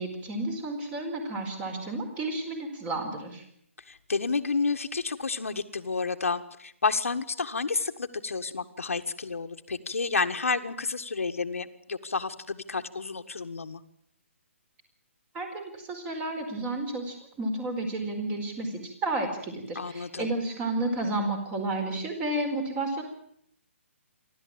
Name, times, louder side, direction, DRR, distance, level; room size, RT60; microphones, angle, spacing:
voice 1, 0.0-3.4 15.3-23.0, right 2 dB, 15° right, 6 dB, 4.5 m, -31 dB
voice 2, 3.9-13.8 19.8-20.3, left 4 dB, 90° left, 7 dB, 1.7 m, -30 dB
28.0 x 13.0 x 8.8 m, 0.71 s
hypercardioid pair, 155°, 7 cm